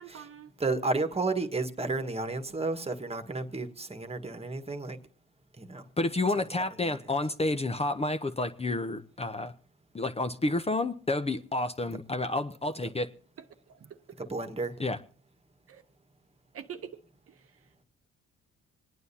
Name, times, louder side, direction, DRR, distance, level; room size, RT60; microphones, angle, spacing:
voice 1, 0.0-0.5 13.7-14.0 15.7-15.8 16.5-17.0 17.3-17.5, right 8 dB, 50° right, 0.8 m, -45 dB
voice 2, 0.6-5.0 5.6-5.9 6.3-6.5 6.8-7.1 14.2-14.7, right 3 dB, 20° right, 1.5 m, -32 dB
voice 3, 6.0-9.5 9.9-13.1 14.8-15.0, left 2 dB, 20° left, 0.7 m, -30 dB
26.5 x 9.3 x 2.8 m
cardioid pair, 90°, 30 cm